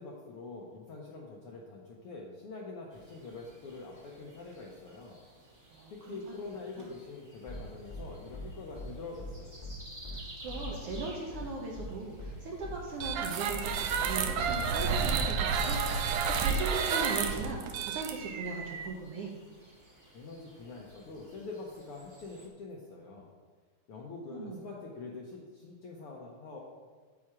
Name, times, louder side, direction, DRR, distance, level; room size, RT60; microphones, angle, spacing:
voice 1, 0.0-5.2 5.9-9.6 20.1-23.3 23.9-26.6, left 3 dB, 70° left, -2 dB, 1.3 m, -45 dB
sound 1, 2.9-22.5, right 1 dB, 30° right, 1.2 m, -53 dB
voice 2, 5.7-6.2 6.8-6.9 10.1-19.3 24.3-24.7, right 4 dB, 70° right, -1 dB, 1.4 m, -39 dB
sound 2, 7.5-7.6 7.9-8.0 8.3-8.5 8.7-8.9 9.2-9.3 9.6-9.7 10.0-10.2 10.5-11.0 11.3-11.4 11.7-11.9 12.2-12.3 12.6-12.7 13.0-13.2 13.5-13.6 13.9-14.1, left 3 dB, 35° left, 0.6 m, -41 dB
sound 3, 13.0-18.9, right 6 dB, 90° right, 2.2 m, -30 dB
7.6 x 6.0 x 4.8 m, 1.5 s
omnidirectional pair, 3.5 m